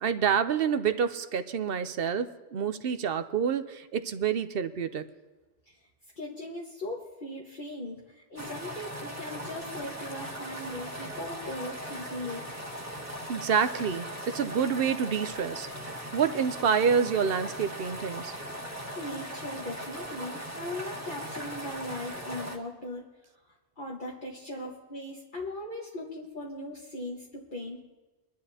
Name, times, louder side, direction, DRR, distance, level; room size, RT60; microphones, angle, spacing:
voice 1, 0.0-5.0 13.3-15.7 16.1-18.3, right 7 dB, 65° right, 11 dB, 0.8 m, -28 dB
voice 2, 6.2-12.6 18.9-23.0 23.8-27.8, left 1 dB, 50° left, -4 dB, 1.6 m, -39 dB
sound 1, 8.4-22.6, equal, 15° right, 1.6 m, -39 dB
23.0 x 11.5 x 2.8 m, 1.2 s
omnidirectional pair, 1.1 m